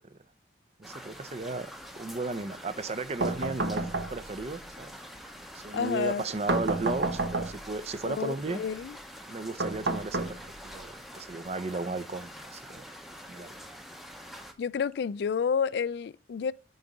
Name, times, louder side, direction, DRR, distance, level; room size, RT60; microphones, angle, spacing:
sound 1, 0.8-14.5, equal, ahead, 0.7 m, -46 dB
voice 1, 0.8-1.7 2.0-4.9 5.5-8.6 9.3-12.9 13.3-13.5, right 3 dB, 35° right, 0.5 m, -35 dB
sound 2, 3.2-4.5 6.5-7.8 9.6-10.8, right 2 dB, 70° right, 0.9 m, -30 dB
voice 2, 5.7-6.2 8.0-8.9 14.6-16.5, left 6 dB, 60° left, 0.3 m, -30 dB
7.9 x 4.0 x 4.8 m
head